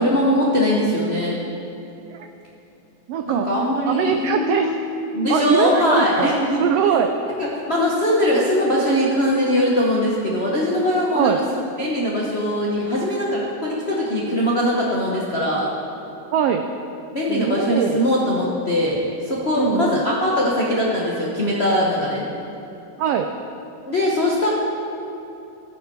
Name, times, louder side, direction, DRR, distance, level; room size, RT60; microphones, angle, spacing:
voice 1, 0.0-1.4 3.3-4.8 5.1-6.7 7.4-11.3 11.8-15.7 17.1-22.2 23.8-24.5, left 1 dB, 70° left, -5 dB, 0.6 m, -21 dB
voice 2, 3.1-3.5 3.8-4.7 5.3-6.3 6.6-7.1 11.1-11.4 16.3-16.7 17.3-18.0 19.6-20.0 23.0-23.3, right 8 dB, 85° right, 6 dB, 1.3 m, -22 dB
14.0 x 9.9 x 4.6 m, 2.9 s
omnidirectional pair, 3.4 m